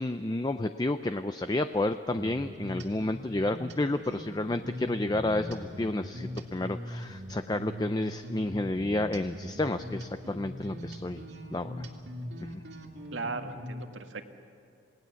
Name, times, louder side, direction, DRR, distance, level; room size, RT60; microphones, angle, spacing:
voice 1, 0.0-11.2 11.5-11.9 12.4-12.6, left 2 dB, 20° left, 9 dB, 0.5 m, -31 dB
sound 1, 2.2-13.8, equal, 70° right, 2.5 m, -41 dB
voice 2, 13.1-14.4, right 3 dB, 90° right, 4 dB, 1.7 m, -37 dB
28.5 x 18.5 x 7.1 m, 2.7 s
head